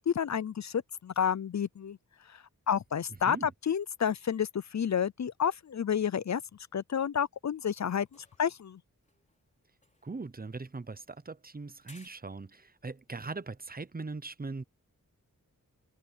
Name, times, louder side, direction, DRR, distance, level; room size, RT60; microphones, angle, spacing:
voice 1, 0.1-2.0 2.7-6.4 6.7-8.1 8.4-8.8, left 8 dB, 55° left, 0.6 m, -30 dB
sound 1, 7.6-8.8 9.0-11.1 11.8-12.1, left 2 dB, 20° left, 4.6 m, -61 dB
voice 2, 10.0-14.6, right 3 dB, 25° right, 0.9 m, -40 dB
wide cardioid pair, 80°, 33 cm